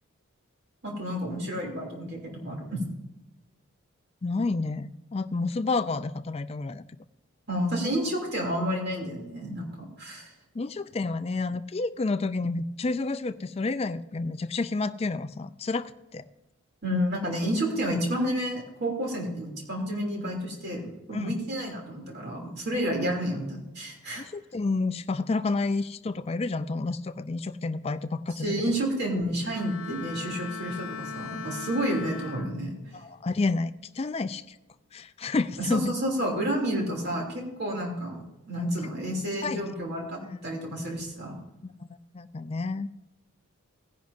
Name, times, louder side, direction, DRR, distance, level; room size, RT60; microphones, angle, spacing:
voice 1, 0.8-2.8 7.5-10.3 16.8-20.8 21.1-24.2 28.4-32.8 35.6-41.4, equal, 50° right, -1 dB, 2.8 m, -30 dB
voice 2, 4.2-6.8 10.5-16.2 21.1-21.4 24.2-28.5 32.9-34.6 34.9-35.9 39.4-39.7 40.3-40.4 41.6-42.9, left 3 dB, 30° left, 12 dB, 0.3 m, -30 dB
Bowed string instrument, 29.4-33.0 33.4-33.8, left 6 dB, 80° left, 0.9 m, -39 dB
17.0 x 10.5 x 2.6 m, 0.98 s
head